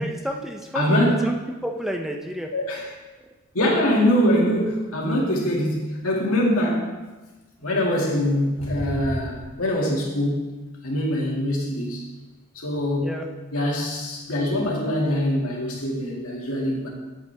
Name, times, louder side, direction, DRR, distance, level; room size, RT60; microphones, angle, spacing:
voice 1, 0.0-2.5 3.2-3.3 13.0-13.3, equal, ahead, 2 dB, 0.5 m, -31 dB
voice 2, 0.7-1.3 2.5-2.8 3.5-6.9 7.6-10.5 10.8-12.0 12.5-13.1 13.5-16.9, equal, 85° left, -2 dB, 2.1 m, -23 dB
8.6 x 8.5 x 3.4 m, 1.2 s
head